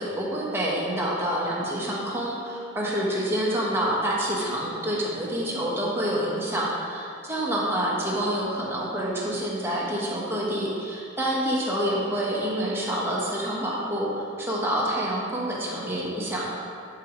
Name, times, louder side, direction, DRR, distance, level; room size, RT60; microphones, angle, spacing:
voice 1, 0.0-16.6, equal, 10° right, -5 dB, 1.1 m, -27 dB
10.5 x 5.0 x 3.1 m, 2.6 s
head